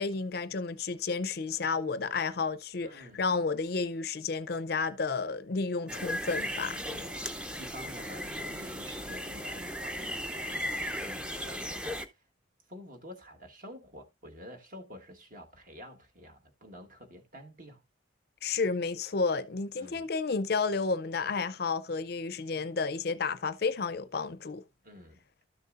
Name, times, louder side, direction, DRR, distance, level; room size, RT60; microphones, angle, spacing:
voice 1, 0.0-6.8 18.4-24.6, left 4 dB, 50° left, 0.5 m, -31 dB
voice 2, 2.8-3.2 6.9-7.2 7.6-12.2 12.7-17.8 19.8-20.1 24.8-25.2, equal, 45° right, 1.4 m, -49 dB
sound 1, 5.9-12.0, equal, 5° right, 0.5 m, -36 dB
12.5 x 6.6 x 2.4 m
head